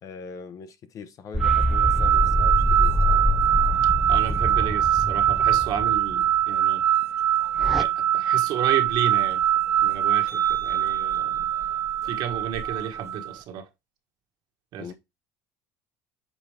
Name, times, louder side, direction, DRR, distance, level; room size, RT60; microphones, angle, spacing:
voice 1, 0.0-3.0 14.8-14.9, left 5 dB, 40° left, 0.7 m, -41 dB
sound 1, 1.3-6.2 7.6-7.8, left 1 dB, ahead, 0.3 m, -25 dB
sound 2, 1.4-13.3, right 11 dB, 35° right, 0.7 m, -23 dB
voice 2, 4.1-6.8 7.8-9.4 9.8-11.5 12.0-13.6 14.7-14.9, right 9 dB, 60° right, 1.4 m, -32 dB
7.1 x 4.1 x 3.3 m
cardioid pair, 150°, 9 cm